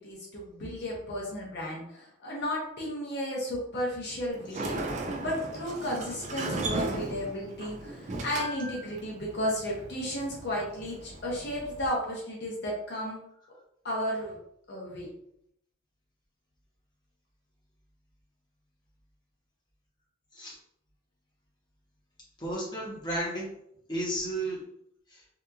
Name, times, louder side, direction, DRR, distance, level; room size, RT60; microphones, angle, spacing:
voice 1, 0.0-13.2 13.8-14.4 14.7-15.1, equal, 55° left, -3 dB, 0.7 m, -34 dB
Sliding door, 4.3-11.9, right 2 dB, 35° right, 0.3 m, -37 dB
voice 2, 22.4-23.5 23.9-24.6 25.1-25.2, right 1 dB, 20° left, -5 dB, 0.8 m, -33 dB
2.8 x 2.4 x 2.3 m, 0.73 s
head